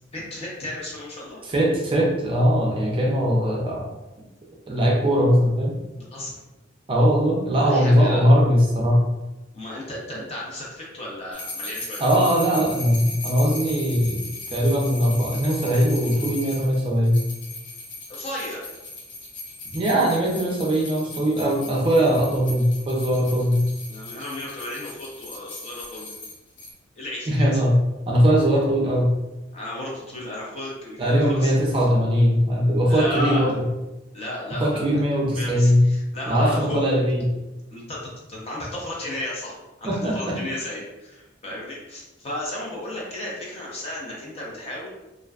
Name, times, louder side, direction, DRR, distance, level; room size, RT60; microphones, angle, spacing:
voice 1, 0.1-1.4 6.1-6.3 7.6-8.3 9.5-12.0 18.1-18.6 23.9-26.1 27.0-27.5 29.5-31.5 32.8-33.6 34.1-35.0 35.3-37.0 37.7-44.9, left 1 dB, 35° left, -4 dB, 0.6 m, -34 dB
voice 2, 1.4-3.8 4.7-5.7 6.9-9.0 12.0-14.2 14.5-17.2 19.7-23.6 27.3-27.8 28.1-29.1 31.0-33.6 34.5-35.8 36.3-37.2 39.8-40.4, equal, 30° right, -2 dB, 0.4 m, -20 dB
sound 1, 11.3-26.7, left 2 dB, 75° left, 0.5 m, -38 dB
2.5 x 2.1 x 2.3 m, 1.0 s
head